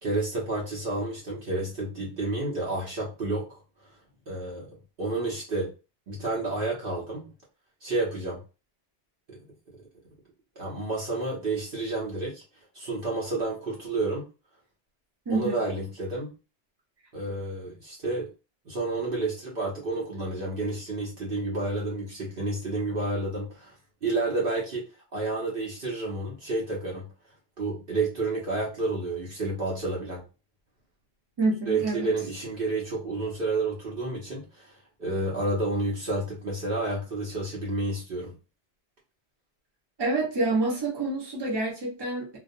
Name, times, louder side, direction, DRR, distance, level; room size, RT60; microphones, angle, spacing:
voice 1, 0.0-3.6 4.3-4.7 5.0-5.7 6.1-7.3 7.8-8.4 9.3-9.4 10.6-12.4 12.7-14.2 15.3-16.3 17.1-18.3 18.7-23.7 24.0-24.8 25.1-27.1 27.6-30.2 31.7-38.3, right 2 dB, 60° right, -4 dB, 0.9 m, -30 dB
voice 2, 15.3-15.6 31.4-32.1 40.0-42.4, right 2 dB, 25° right, -3 dB, 0.8 m, -27 dB
2.3 x 2.3 x 2.5 m, 0.31 s
omnidirectional pair, 1.1 m